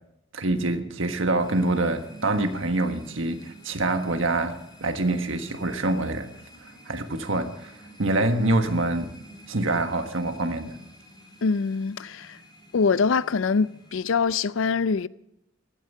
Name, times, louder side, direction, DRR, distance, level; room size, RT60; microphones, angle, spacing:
voice 1, 0.3-6.3 6.9-7.7 8.0-9.2 9.5-10.7, right 2 dB, 70° right, 1.5 m, -25 dB
sound 1, 1.4-14.0, right 1 dB, 20° left, 4.5 m, -49 dB
voice 2, 11.4-12.4 12.7-15.1, left 5 dB, 70° left, 0.5 m, -24 dB
16.5 x 13.0 x 5.6 m
head